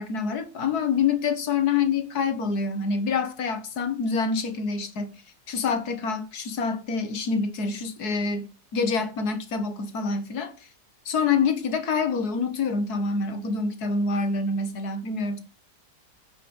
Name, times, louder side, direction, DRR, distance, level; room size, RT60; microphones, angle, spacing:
voice 1, 0.0-5.2 5.5-10.5 11.1-15.4, left 5 dB, 65° left, 1.9 m, -26 dB
9.5 x 5.6 x 7.2 m
omnidirectional pair, 1.8 m